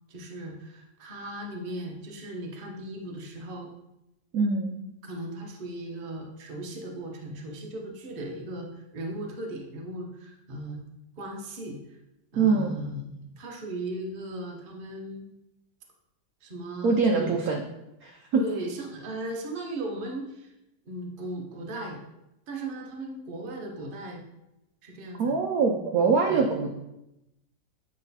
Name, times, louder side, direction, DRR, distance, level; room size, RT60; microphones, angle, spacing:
voice 1, 0.1-3.7 5.0-10.8 11.2-12.0 12.3-15.3 16.4-17.4 18.3-20.5 20.8-22.0 22.5-24.2 24.8-25.3 26.3-26.4, right 1 dB, 40° right, 0 dB, 0.8 m, -37 dB
voice 2, 4.3-4.8 12.4-12.8 16.8-17.6 18.0-18.2 25.2-26.7, right 4 dB, 70° right, 2 dB, 0.9 m, -24 dB
8.4 x 3.2 x 4.1 m, 0.88 s
omnidirectional pair, 2.0 m